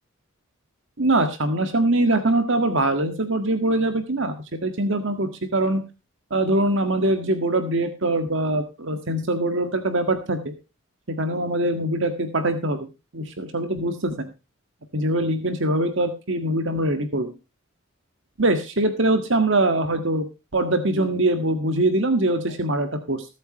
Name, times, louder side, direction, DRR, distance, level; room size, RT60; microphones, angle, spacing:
voice 1, 1.0-5.8 6.3-10.5 11.1-12.9 13.1-14.3 14.9-17.3 18.4-20.3 20.5-23.3, right 1 dB, 65° right, 7 dB, 1.8 m, -23 dB
22.0 x 8.4 x 3.0 m, 0.29 s
head